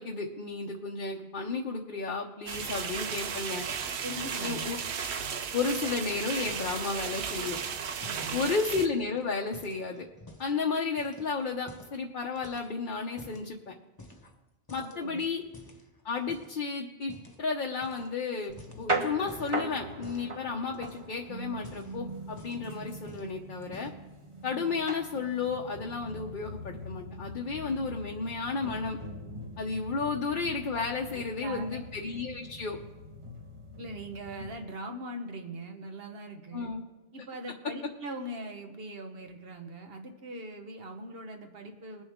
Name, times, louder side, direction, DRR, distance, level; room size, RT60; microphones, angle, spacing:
voice 1, 0.0-3.6 4.4-4.8 5.5-7.6 8.3-10.1 10.4-13.7 14.7-15.4 16.0-23.9 24.4-29.0 29.6-32.8 36.5-36.8, left 4 dB, 55° left, 0 dB, 0.9 m, -33 dB
sound 1, 2.5-8.9, right 6 dB, 80° right, 1.0 m, -35 dB
voice 2, 4.0-4.7 8.0-8.5 14.8-15.2 31.4-31.8 33.8-36.7 37.1-42.0, right 1 dB, 60° right, 4 dB, 1.4 m, -41 dB
sound 2, 6.5-6.9 7.1-7.5 8.0-10.6 11.0-12.0 12.4-13.5 14.0-14.4 14.7-16.6 17.1-17.4 17.8-18.1 18.4-19.6 20.0-20.3 20.7-21.2 21.5-22.7 23.1-23.3 23.6-24.1, left 1 dB, 20° left, 1.1 m, -50 dB
sound 3, 18.5-34.6, right 1 dB, 30° right, 1.2 m, -40 dB
20.5 x 7.1 x 3.6 m, 1.1 s
omnidirectional pair, 1.1 m